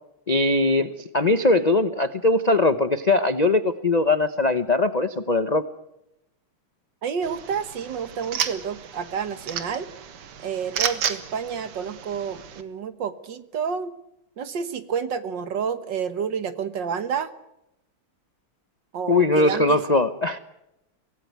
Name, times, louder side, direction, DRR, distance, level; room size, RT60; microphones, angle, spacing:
voice 1, 0.3-5.6 19.1-20.4, left 2 dB, 50° left, 10 dB, 0.4 m, -21 dB
voice 2, 7.0-9.9 10.4-13.9 14.4-17.3 18.9-19.8, right 6 dB, 60° right, 12 dB, 1.9 m, -29 dB
sound 1, 7.2-12.6, right 8 dB, 90° right, 2.4 m, -32 dB
24.5 x 17.5 x 9.4 m, 0.86 s
omnidirectional pair, 2.4 m